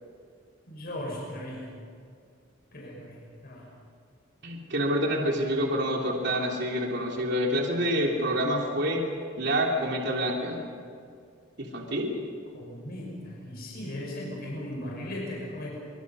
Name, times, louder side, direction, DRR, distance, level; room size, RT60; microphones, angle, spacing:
voice 1, 0.7-1.7 2.7-3.2 3.4-3.7 12.5-15.7, left 1 dB, 50° left, -3 dB, 5.8 m, -37 dB
voice 2, 4.4-9.0 9.4-10.6 11.6-12.2, equal, 55° right, -1 dB, 3.3 m, -27 dB
25.5 x 25.0 x 5.6 m, 2.3 s
head